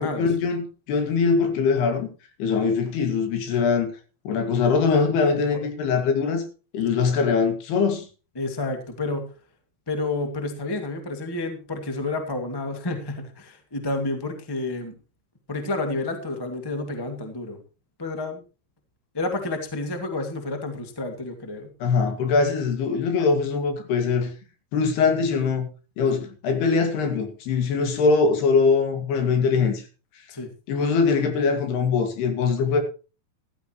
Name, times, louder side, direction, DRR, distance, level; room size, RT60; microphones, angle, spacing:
voice 1, 0.0-2.1 2.4-3.9 4.3-6.4 6.7-8.1 21.8-24.3 24.7-25.7 26.0-29.8 30.7-32.8, left 5 dB, 70° left, 4.1 m, -22 dB
voice 2, 8.3-9.3 9.9-14.9 15.5-17.6 18.0-18.4 19.1-21.7 30.3-30.5, left 2 dB, 20° left, 0.6 m, -30 dB
14.0 x 14.0 x 3.1 m
omnidirectional pair, 4.8 m